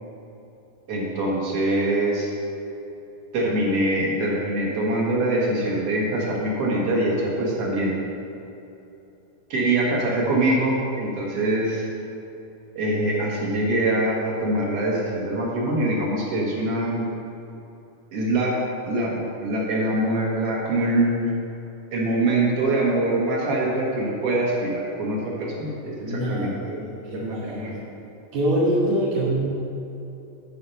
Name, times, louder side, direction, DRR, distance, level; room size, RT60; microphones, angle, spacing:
voice 1, 0.9-2.3 3.3-8.0 9.5-11.9 12.8-17.1 18.1-18.6 18.8-21.3 21.9-26.9 27.1-27.8, right 1 dB, 50° right, -3 dB, 2.0 m, -24 dB
voice 2, 26.1-27.7 28.3-29.4, right 1 dB, 75° right, -9 dB, 3.5 m, -24 dB
13.0 x 4.9 x 5.6 m, 2.9 s
omnidirectional pair, 4.2 m